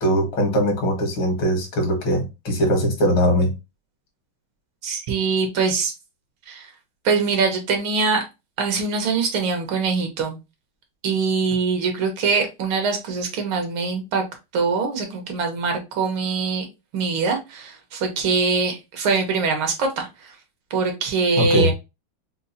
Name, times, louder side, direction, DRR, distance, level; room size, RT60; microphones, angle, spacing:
voice 1, 0.0-3.5 21.4-21.7, equal, 75° left, 2.2 m, -21 dB
voice 2, 4.8-5.9 6.5-6.7 7.1-8.2 8.6-10.4 11.0-14.2 14.5-16.7 16.9-20.3 20.7-21.7, right 4 dB, 75° right, 1.8 m, -23 dB
5.1 x 2.4 x 2.6 m
omnidirectional pair, 2.3 m